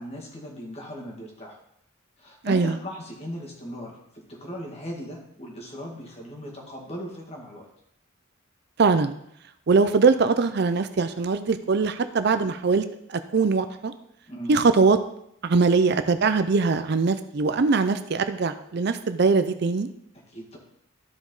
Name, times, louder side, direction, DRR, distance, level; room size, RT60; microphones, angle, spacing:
voice 1, 0.0-1.6 2.2-7.7 14.3-14.6 20.3-20.6, equal, 30° left, -1 dB, 2.1 m, -38 dB
voice 2, 2.4-2.8 8.8-9.1 9.7-12.8 13.3-13.9 14.5-15.0 15.4-19.9, right 4 dB, 55° right, 11 dB, 0.5 m, -21 dB
13.5 x 5.0 x 4.0 m, 0.75 s
head